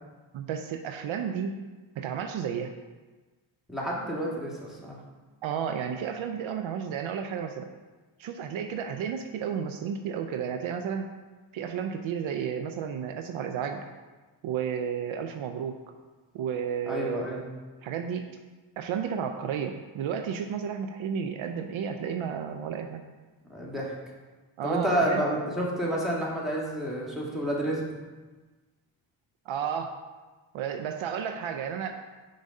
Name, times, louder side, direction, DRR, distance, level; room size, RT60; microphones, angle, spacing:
voice 1, 0.3-1.6 2.0-2.7 5.4-7.7 8.2-11.0 11.5-13.9 14.4-15.8 16.3-17.4 17.8-18.3 18.8-23.0 24.6-25.3 29.5-30.0 30.5-32.0, right 7 dB, 70° right, 6 dB, 0.6 m, -32 dB
voice 2, 3.7-5.0 16.9-17.6 23.5-23.9 24.6-27.9, equal, ahead, -5 dB, 1.9 m, -29 dB
4.7 x 3.9 x 5.3 m, 1.3 s
supercardioid pair, 50°, 50 cm